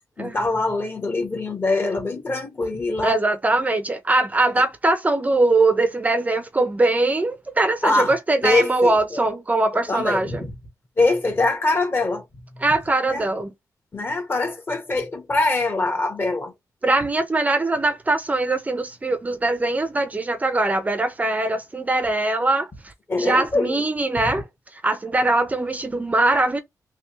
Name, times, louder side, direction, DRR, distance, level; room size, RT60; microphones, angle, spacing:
voice 1, 0.2-3.2 7.8-8.2 8.4-9.2 9.9-10.5 11.0-12.2 12.5-12.6 13.1-13.3 13.9-16.5 23.1-23.8 24.2-24.3, left 2 dB, 35° left, 1.3 m, -23 dB
voice 2, 3.0-10.5 12.6-13.5 16.8-22.7 23.2-24.5 24.7-26.6, right 2 dB, 25° right, 0.6 m, -21 dB
3.4 x 2.8 x 3.1 m
cardioid pair, 100°, 6 cm